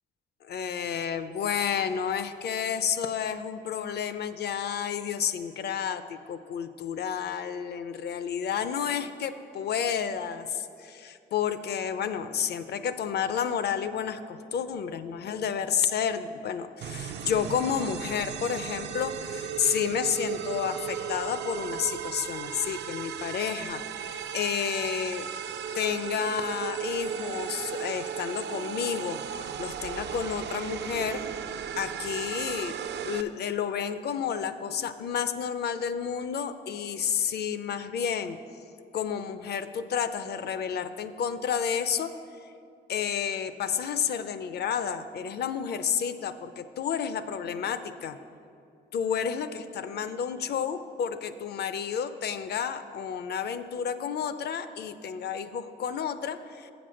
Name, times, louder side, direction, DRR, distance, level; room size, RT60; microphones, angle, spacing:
voice 1, 0.4-25.3 25.7-31.2 31.8-32.8 33.0-38.4 38.9-42.1 42.9-48.2 48.9-56.7, left 7 dB, 55° left, 12 dB, 0.5 m, -31 dB
sound 1, 16.8-33.2, right 8 dB, 60° right, 0.4 m, -35 dB
7.5 x 6.0 x 6.3 m, 2.5 s
cardioid pair, 90°, 20 cm